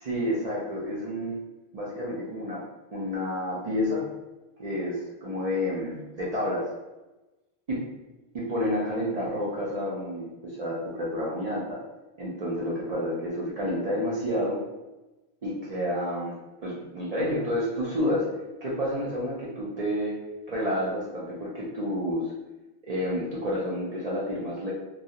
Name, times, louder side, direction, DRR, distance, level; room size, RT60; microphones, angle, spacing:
voice 1, 0.0-1.4 1.7-2.6 2.9-4.1 4.6-6.7 7.7-7.8 8.3-11.8 12.2-14.6 15.4-16.4 16.6-18.3 18.6-20.1 20.5-22.3 22.8-24.7, equal, 50° right, -6 dB, 0.4 m, -29 dB
2.3 x 2.0 x 2.7 m, 1.1 s
omnidirectional pair, 1.1 m